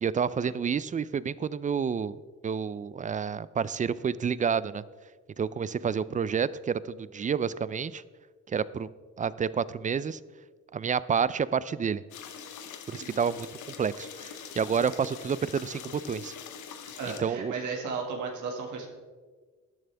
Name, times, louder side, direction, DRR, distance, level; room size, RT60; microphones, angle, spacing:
voice 1, 0.0-2.2 2.4-4.8 5.4-8.0 8.5-8.9 9.2-10.2 10.7-12.0 12.9-13.5 13.8-16.3 17.2-17.5, right 6 dB, 25° right, 18 dB, 0.4 m, -29 dB
sound 1, 12.1-17.2, left 7 dB, 75° left, 1.1 m, -44 dB
voice 2, 16.8-18.9, right 4 dB, 75° right, 1 dB, 1.9 m, -35 dB
13.5 x 10.5 x 3.4 m, 1.5 s
cardioid pair, 90°, 30 cm